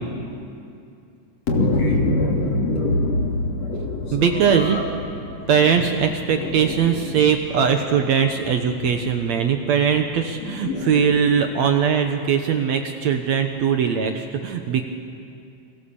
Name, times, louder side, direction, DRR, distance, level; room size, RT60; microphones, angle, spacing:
voice 1, 1.5-4.8 5.3-5.4 6.3-6.8 10.6-11.2, left 2 dB, 50° left, 0 dB, 4.0 m, -23 dB
voice 2, 4.1-4.8 5.5-14.9, right 7 dB, 65° right, 5 dB, 2.2 m, -20 dB
29.5 x 24.0 x 7.1 m, 2.5 s
omnidirectional pair, 3.8 m